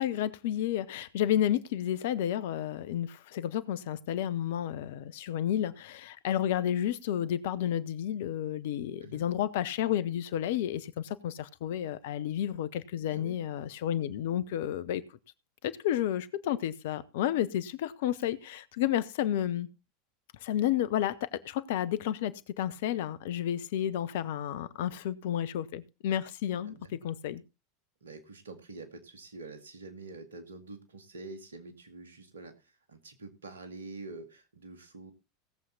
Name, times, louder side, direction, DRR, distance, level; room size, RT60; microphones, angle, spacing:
voice 1, 0.0-15.0 15.6-19.7 20.4-26.7 27.0-27.4, left 11 dB, 60° left, 0.9 m, -31 dB
voice 2, 26.6-27.0 28.0-35.1, right 3 dB, 75° right, 2.3 m, -46 dB
17.5 x 7.6 x 4.1 m
figure-of-eight pair, 80°, 0 cm